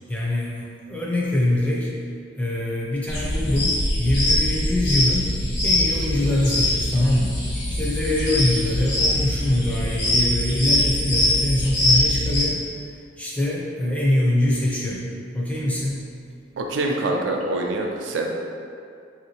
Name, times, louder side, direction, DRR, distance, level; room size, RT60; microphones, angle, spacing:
voice 1, 0.1-1.9 2.4-7.4 7.7-12.6 12.9-15.1 15.3-16.0, left 1 dB, 10° left, -6 dB, 0.5 m, -24 dB
sound 1, 3.1-12.4, left 1 dB, 65° left, 1.1 m, -23 dB
voice 2, 16.5-18.3, right 2 dB, 85° right, 1 dB, 0.4 m, -25 dB
3.1 x 2.7 x 2.8 m, 2.3 s
head